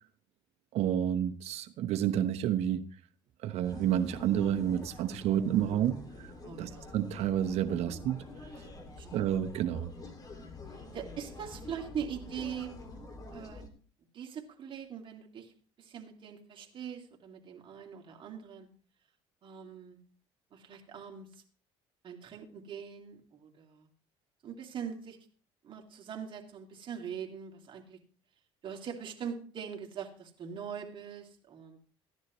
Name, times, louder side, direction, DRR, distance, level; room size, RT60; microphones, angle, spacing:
voice 1, 0.7-2.8 3.4-6.3 6.6-8.2 9.1-9.9, right 10 dB, 65° right, 1.0 m, -30 dB
sound 1, 3.6-13.7, left 2 dB, 35° left, 2.4 m, -47 dB
voice 2, 6.4-6.9 9.0-9.3 10.7-12.7 13.3-13.6 14.1-15.5 15.8-18.7 19.4-20.0 20.5-21.4 22.0-23.9 24.4-25.2 25.6-28.0 28.6-31.8, right 8 dB, 45° right, 2.4 m, -42 dB
14.5 x 10.5 x 3.1 m
supercardioid pair, 90°, 12 cm